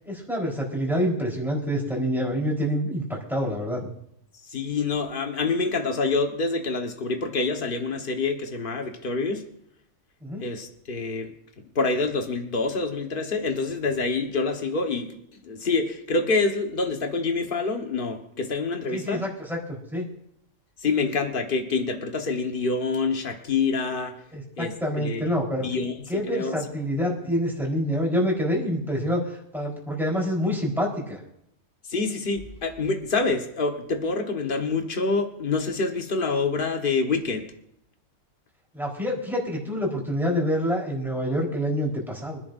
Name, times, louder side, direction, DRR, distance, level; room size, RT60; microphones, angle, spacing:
voice 1, 0.1-3.9 10.2-10.4 18.9-20.1 24.3-25.7 26.1-31.2 38.7-42.4, equal, ahead, -3 dB, 4.0 m, -27 dB
voice 2, 4.5-9.4 10.4-11.3 11.7-15.2 15.4-19.2 20.8-24.2 24.6-25.2 25.6-25.9 26.2-26.6 31.9-37.4, left 4 dB, 40° left, 4 dB, 1.5 m, -26 dB
25.0 x 11.0 x 2.6 m, 0.75 s
omnidirectional pair, 1.5 m